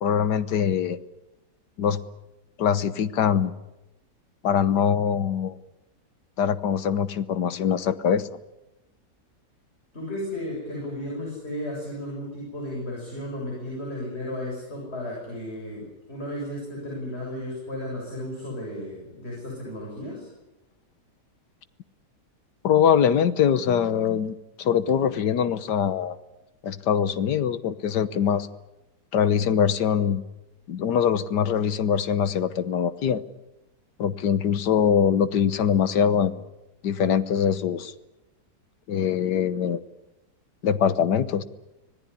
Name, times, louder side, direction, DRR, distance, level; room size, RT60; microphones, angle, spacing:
voice 1, 0.0-1.0 1.8-2.0 2.6-3.5 4.4-5.6 6.4-8.3 22.6-26.2 26.6-28.5 29.1-30.2 30.7-33.2 34.0-36.4 36.8-37.9 38.9-39.8 40.6-41.4, left 8 dB, 80° left, 13 dB, 1.7 m, -23 dB
voice 2, 9.9-20.3, left 1 dB, 35° left, -3 dB, 7.8 m, -34 dB
26.0 x 18.0 x 9.9 m, 0.97 s
omnidirectional pair, 1.8 m